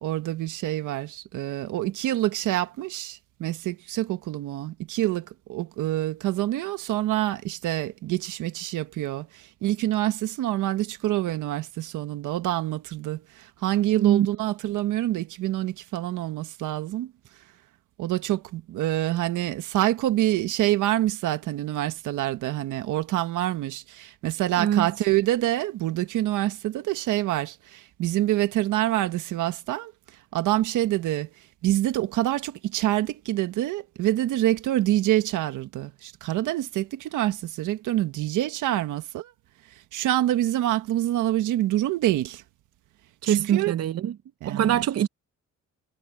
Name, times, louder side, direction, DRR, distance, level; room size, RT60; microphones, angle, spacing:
voice 1, 0.0-17.1 18.0-29.9 30.3-31.3 31.6-39.3 39.9-42.4 43.2-43.7 44.4-44.8, right 14 dB, 85° right, 1.5 m, -26 dB
voice 2, 13.9-14.3 24.6-24.9 43.2-44.1 44.4-45.1, right 10 dB, 55° right, 0.7 m, -23 dB
cardioid pair, 90°, 30 cm